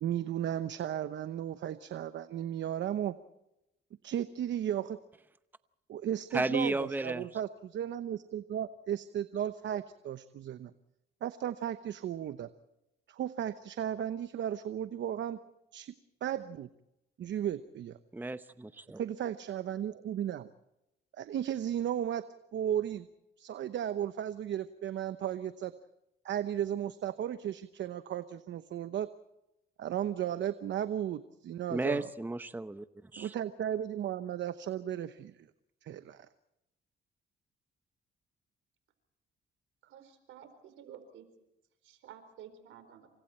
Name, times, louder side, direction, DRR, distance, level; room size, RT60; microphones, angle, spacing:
voice 1, 0.0-3.2 4.0-5.0 5.9-10.7 11.2-12.5 13.1-15.4 15.7-15.9 16.2-16.7 17.2-18.0 19.0-20.5 21.1-22.2 22.5-23.1 23.4-25.7 26.2-29.1 29.8-32.1 33.2-35.4 35.8-36.3, right 10 dB, 70° right, 11 dB, 1.0 m, -35 dB
voice 2, 6.3-7.2 18.1-19.0 31.7-32.8 33.1-33.3, right 2 dB, 10° right, 12 dB, 0.8 m, -33 dB
voice 3, 39.8-41.3 41.8-43.1, right 9 dB, 85° right, 10 dB, 4.4 m, -52 dB
28.5 x 25.0 x 4.4 m, 0.88 s
cardioid pair, 90°, 20 cm